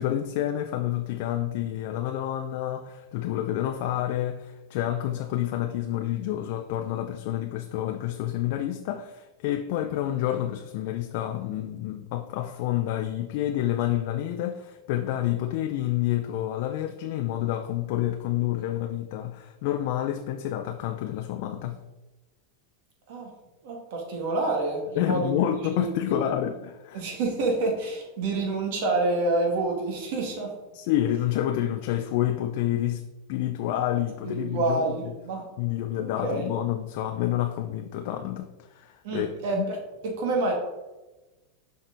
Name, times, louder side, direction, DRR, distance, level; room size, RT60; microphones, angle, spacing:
voice 1, 0.0-21.8 24.9-27.0 30.7-35.2 35.6-39.3 39.5-39.7, left 12 dB, 60° left, 0.4 m, -28 dB
voice 2, 23.6-25.4 25.8-26.3 26.9-30.5 34.2-35.5 35.9-36.5 39.0-39.8 40.0-40.5, right 2 dB, 65° right, 2.1 m, -28 dB
6.2 x 4.8 x 3.9 m
supercardioid pair, 120°, 0 cm